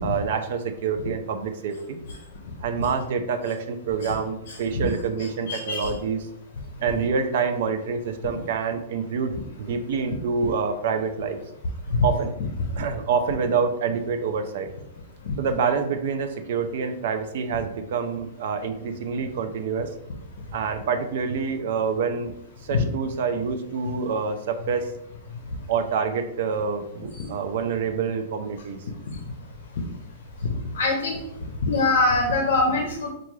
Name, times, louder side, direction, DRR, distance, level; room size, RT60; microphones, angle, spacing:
voice 1, 0.0-2.0 2.6-6.3 6.8-11.4 12.0-12.3 12.8-14.7 15.4-19.9 20.5-22.3 22.6-24.9 25.7-28.8, right 5 dB, 55° right, 7 dB, 0.5 m, -27 dB
voice 2, 5.5-5.9 11.9-12.0 15.3-15.4 22.7-22.9 27.2-27.3 30.7-31.2 31.7-33.1, left 3 dB, 70° left, 2 dB, 0.6 m, -23 dB
4.6 x 2.4 x 3.1 m, 0.79 s
supercardioid pair, 170°, 0 cm